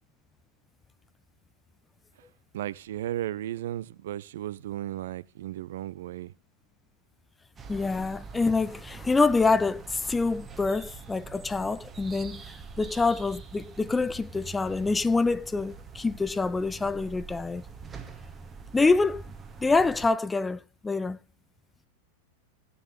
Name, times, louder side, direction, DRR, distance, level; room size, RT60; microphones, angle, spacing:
voice 1, 2.5-6.3, right 12 dB, 55° right, 0.5 m, -35 dB
sound 1, 7.6-20.1, right 5 dB, 20° right, 1.1 m, -44 dB
voice 2, 7.7-17.6 18.7-19.3 19.6-21.2, left 3 dB, 10° left, 0.6 m, -26 dB
17.5 x 6.9 x 3.1 m
figure-of-eight pair, 90°, 0 cm